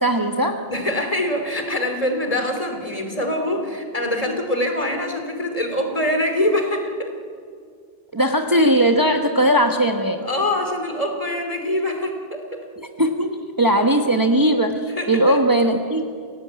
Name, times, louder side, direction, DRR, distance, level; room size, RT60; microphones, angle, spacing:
voice 1, 0.0-0.6 8.1-10.3 13.0-16.0, right 1 dB, 20° right, 4 dB, 1.2 m, -19 dB
voice 2, 0.7-7.1 10.2-12.6 14.9-15.4, left 1 dB, 35° left, 4 dB, 3.2 m, -24 dB
29.0 x 16.5 x 8.7 m, 2.1 s
omnidirectional pair, 1.1 m